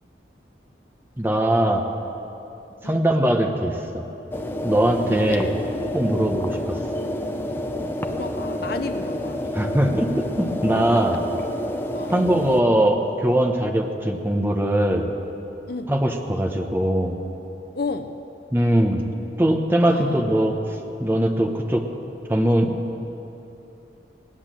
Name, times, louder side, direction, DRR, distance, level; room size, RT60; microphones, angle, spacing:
voice 1, 1.2-1.8 2.8-4.0 4.6-5.5 5.9-6.8 9.5-11.2 12.1-15.0 15.9-17.2 18.5-19.0 19.4-21.8 22.3-22.7, right 1 dB, 10° right, 3 dB, 1.0 m, -21 dB
sound 1, 4.3-12.6, left 1 dB, 10° left, 0.6 m, -29 dB
voice 2, 4.8-5.5 7.8-9.4 10.7-11.2 11.9-12.2 15.7-15.9 17.7-18.2 19.8-20.2, left 3 dB, 55° left, 8 dB, 0.6 m, -33 dB
17.0 x 10.5 x 7.6 m, 2.9 s
head